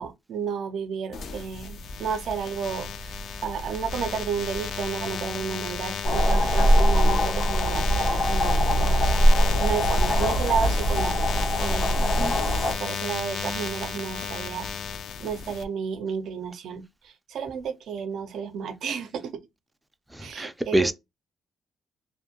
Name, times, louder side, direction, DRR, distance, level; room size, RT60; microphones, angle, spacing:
voice 1, 0.0-9.0 9.6-11.2 11.6-12.2 12.8-14.7 15.2-19.4 20.2-20.9, right 6 dB, 70° right, 0.4 m, -32 dB
sound 1, 1.1-15.6, left 6 dB, 65° left, 0.4 m, -33 dB
sound 2, 6.0-12.7, equal, 85° left, 1.2 m, -21 dB
voice 2, 20.1-20.9, right 1 dB, 5° right, 0.4 m, -25 dB
2.6 x 2.1 x 2.7 m
cardioid pair, 90°, 0 cm